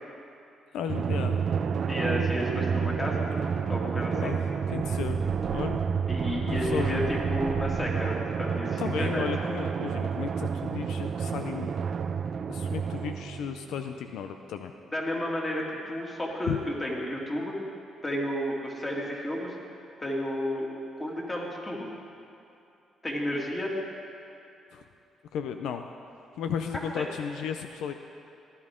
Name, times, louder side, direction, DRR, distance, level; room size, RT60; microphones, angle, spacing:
voice 1, 0.7-1.4 4.2-4.4 4.7-5.2 5.5-5.8 6.5-7.0 8.8-11.7 12.5-14.7 16.5-16.6 24.7-24.8 25.3-25.8 26.4-27.9, left 8 dB, 85° left, 6 dB, 0.5 m, -34 dB
Drum, 0.9-14.0, right 6 dB, 50° right, 0.5 m, -29 dB
voice 2, 1.9-3.2 3.6-4.3 6.1-9.3 14.9-17.5 18.0-19.6 20.0-20.7 21.0-21.9 23.0-23.7 27.0-27.1, left 1 dB, 20° left, -3 dB, 2.5 m, -32 dB
sound 1, 2.8-2.9 3.3-3.9 4.2-8.1, right 4 dB, 90° right, 1.7 m, -42 dB
15.5 x 11.0 x 3.7 m, 2.7 s
cardioid pair, 90°, 0 cm